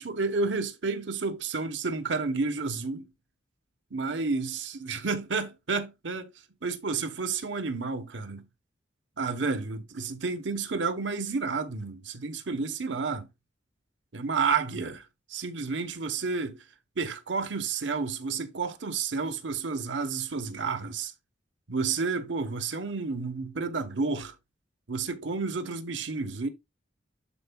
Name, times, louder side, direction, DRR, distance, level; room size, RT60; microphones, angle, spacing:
voice 1, 0.0-3.1 3.9-6.3 6.6-8.4 9.2-13.3 14.1-15.0 15.3-16.6 17.0-21.1 21.7-24.3 24.9-26.5, right 4 dB, 70° right, 1.0 m, -30 dB
12.5 x 4.5 x 2.2 m
head